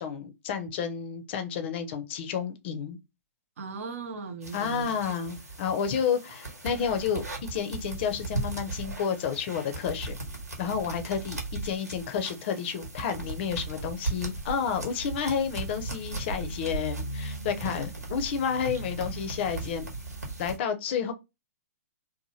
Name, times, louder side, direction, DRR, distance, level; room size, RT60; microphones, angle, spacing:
voice 1, 0.0-3.0 4.5-7.2 7.5-10.2 10.6-19.9 20.4-21.1, left 7 dB, 45° left, 0.6 m, -30 dB
voice 2, 3.6-4.9, right 4 dB, 55° right, 0.7 m, -37 dB
sound 1, 4.4-20.6, right 2 dB, 90° right, 1.2 m, -37 dB
2.8 x 2.1 x 3.0 m
figure-of-eight pair, 120°, 9 cm